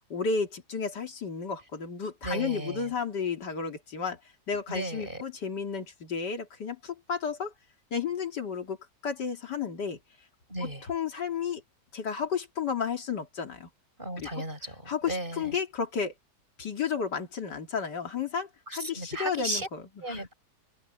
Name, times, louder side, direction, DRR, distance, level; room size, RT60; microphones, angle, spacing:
voice 1, 0.1-4.2 4.5-7.5 7.9-8.8 9.0-10.0 10.6-11.6 11.9-13.7 14.2-14.4 14.9-16.1 16.6-20.3, left 6 dB, 85° left, 2.9 m, -32 dB
voice 2, 2.2-2.9 4.7-5.2 10.5-10.8 14.0-15.4 18.7-19.7 20.0-20.3, right 1 dB, 30° right, 6.1 m, -35 dB
open air
omnidirectional pair, 1.8 m